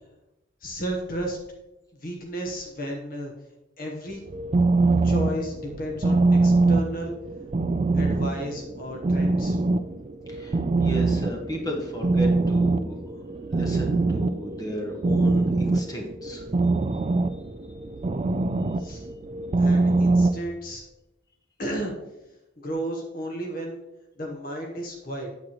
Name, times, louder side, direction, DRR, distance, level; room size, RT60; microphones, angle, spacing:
voice 1, 0.6-1.4 2.0-3.3 3.8-4.2 5.0-7.1 7.9-9.6 18.8-19.0 19.6-20.8 21.6-21.9 22.6-23.8 24.2-25.3, right 1 dB, 45° left, 1 dB, 0.9 m, -33 dB
sound 1, 4.1-20.4, right 3 dB, 30° right, 0.3 m, -24 dB
voice 2, 10.3-13.2 13.5-16.4 16.9-17.1, equal, 20° left, 1 dB, 1.3 m, -34 dB
8.8 x 7.4 x 3.0 m, 0.97 s
head